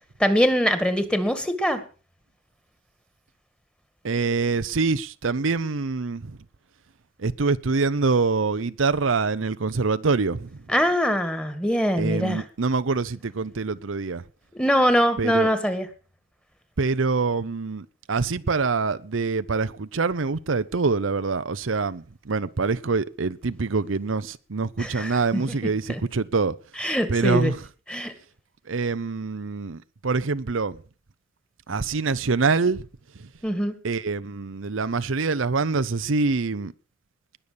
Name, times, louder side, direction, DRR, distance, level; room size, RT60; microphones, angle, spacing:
voice 1, 0.2-1.8 10.7-12.4 14.5-15.9 24.8-25.6 25.9-26.0 26.8-27.5 27.9-28.1 33.4-33.7, equal, 5° left, 2.0 m, -23 dB
voice 2, 4.0-6.4 7.2-10.6 12.0-14.2 15.2-15.5 16.8-26.5 27.1-27.5 28.7-30.8 31.7-32.9 33.8-36.7, right 4 dB, 80° right, 0.7 m, -25 dB
20.5 x 7.1 x 6.8 m
head